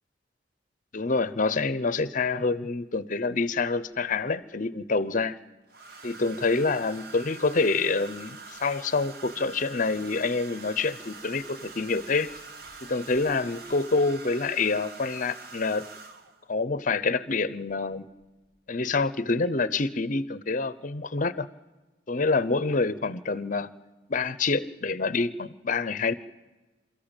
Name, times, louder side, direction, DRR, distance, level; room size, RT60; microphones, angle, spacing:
voice 1, 0.9-5.4 6.0-12.3 12.8-15.8 16.5-18.1 18.7-21.5 22.1-23.7 24.1-26.1, left 3 dB, 45° left, 15 dB, 0.7 m, -27 dB
Domestic sounds home sounds, 3.9-4.3 5.7-16.5 17.7-17.9 18.2-18.6, right 4 dB, 55° right, 1.5 m, -45 dB
28.0 x 14.5 x 9.0 m, 1.2 s
head